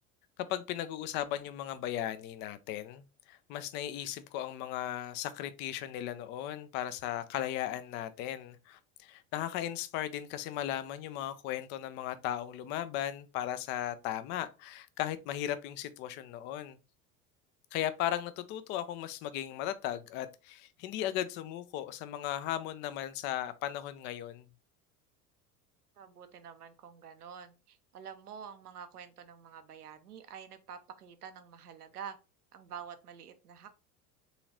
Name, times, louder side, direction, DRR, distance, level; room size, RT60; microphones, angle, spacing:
voice 1, 0.5-16.8 17.7-24.5, left 12 dB, 25° left, 0.3 m, -36 dB
voice 2, 26.0-32.2 32.5-33.7, right 7 dB, 75° right, 0.7 m, -48 dB
4.1 x 3.7 x 2.9 m
figure-of-eight pair, 70°, 46 cm